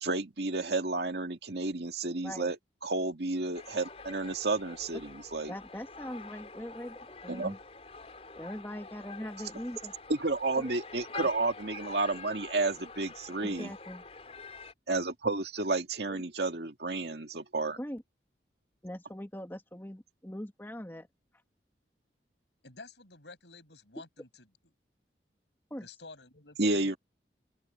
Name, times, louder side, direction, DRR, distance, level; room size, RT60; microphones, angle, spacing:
voice 1, 0.0-2.6 2.8-5.5 7.3-7.6 10.1-13.7 14.9-17.8 26.6-27.0, right 3 dB, 70° right, 2.0 m, -31 dB
sound 1, 3.5-14.7, left 4 dB, 35° left, 4.5 m, -46 dB
voice 2, 5.5-7.6 8.4-9.9 10.6-10.7 13.4-14.0 17.8-18.0 18.8-21.1 25.7-25.9, equal, 15° left, 2.1 m, -41 dB
voice 3, 22.6-24.4 25.8-27.0, left 3 dB, 85° left, 6.6 m, -51 dB
open air
head